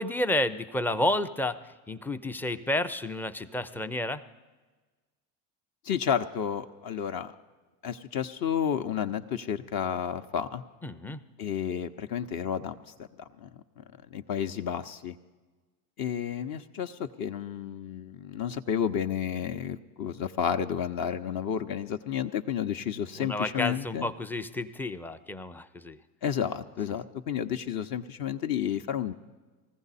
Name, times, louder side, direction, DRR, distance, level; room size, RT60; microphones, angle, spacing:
voice 1, 0.0-4.2 10.8-11.2 23.1-26.0, left 1 dB, 5° left, 10 dB, 0.4 m, -31 dB
voice 2, 5.8-7.3 7.8-10.6 11.4-13.1 13.4-13.5 13.8-13.9 14.1-15.2 16.0-24.1 26.2-29.1, left 8 dB, 45° left, 7 dB, 0.7 m, -31 dB
20.0 x 15.0 x 4.1 m, 1.3 s
hypercardioid pair, 85°, 49 cm